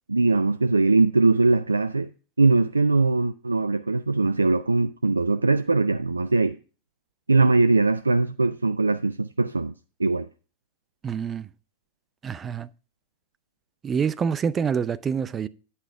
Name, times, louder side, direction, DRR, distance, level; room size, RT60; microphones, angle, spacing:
voice 1, 0.1-2.1 2.4-6.6 7.3-9.7 10.0-10.3, right 3 dB, 80° right, 0.4 m, -21 dB
voice 2, 11.0-11.5 12.2-12.7 13.8-15.5, right 6 dB, 20° right, 0.5 m, -26 dB
10.0 x 5.7 x 4.6 m
figure-of-eight pair, 90°, 0 cm